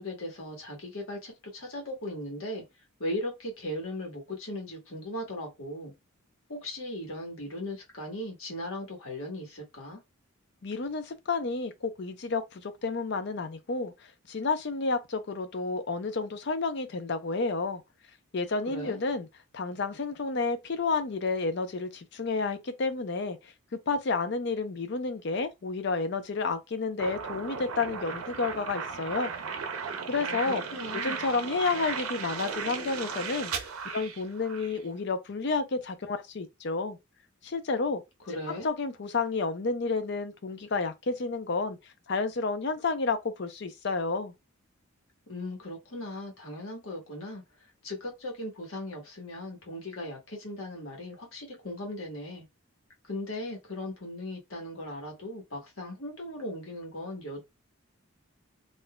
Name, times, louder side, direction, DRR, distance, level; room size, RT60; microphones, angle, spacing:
voice 1, 0.0-2.6 3.0-5.9 6.5-10.0 18.7-19.0 30.2-31.2 38.2-38.7 45.3-47.4 47.8-52.4 53.0-57.4, left 1 dB, 70° left, 1.3 m, -38 dB
voice 2, 10.6-13.9 14.3-17.8 18.3-19.3 19.5-23.4 23.7-29.3 30.1-30.6 30.9-33.5 33.8-37.0 37.4-38.0 38.6-41.8 42.1-44.3, left 4 dB, 55° left, 0.5 m, -30 dB
sound 1, 27.0-34.8, right 6 dB, 80° right, 0.6 m, -36 dB
3.8 x 2.5 x 2.2 m
head